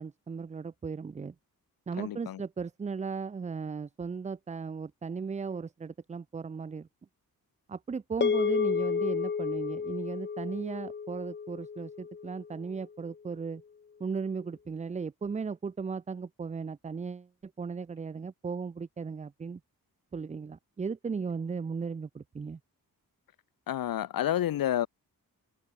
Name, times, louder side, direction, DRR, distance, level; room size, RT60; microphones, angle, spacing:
voice 1, 0.0-1.3 1.9-6.9 7.7-13.6 14.0-19.6 20.1-22.6, right 5 dB, 20° right, 0.4 m, -36 dB
voice 2, 2.0-2.4 23.7-24.9, left 12 dB, 70° left, 0.6 m, -29 dB
sound 1, 8.2-12.7, left 6 dB, 30° left, 0.7 m, -31 dB
wide cardioid pair, 160°, 36 cm